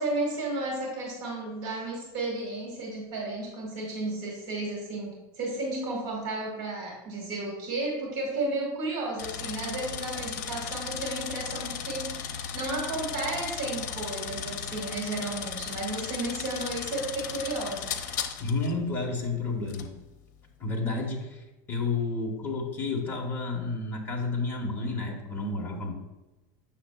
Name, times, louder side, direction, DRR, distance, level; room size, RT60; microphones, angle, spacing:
voice 1, 0.0-12.1 12.5-17.9, right 2 dB, 45° right, -1 dB, 1.6 m, -33 dB
sound 1, 9.2-18.7 19.7-19.9, left 7 dB, 85° left, 0.6 m, -36 dB
voice 2, 18.4-19.9 20.6-25.9, left 3 dB, 25° left, 0 dB, 1.1 m, -31 dB
7.5 x 6.4 x 2.2 m, 1.1 s
supercardioid pair, 155°, 9 cm